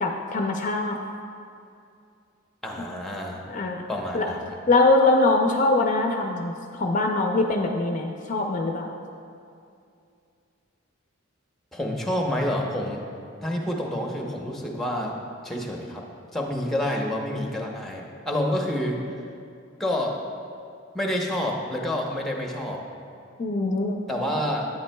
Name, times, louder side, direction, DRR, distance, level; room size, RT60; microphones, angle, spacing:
voice 1, 0.0-1.0 3.5-3.8 4.1-4.3 4.7-8.9 23.4-24.0, left 2 dB, 40° left, 2 dB, 0.4 m, -23 dB
voice 2, 2.6-3.4 3.9-4.5 11.7-13.1 13.4-16.0 16.3-19.0 19.8-20.2 20.9-22.8 24.1-24.7, left 1 dB, ahead, 0 dB, 0.7 m, -28 dB
10.5 x 8.9 x 2.2 m, 2.5 s
head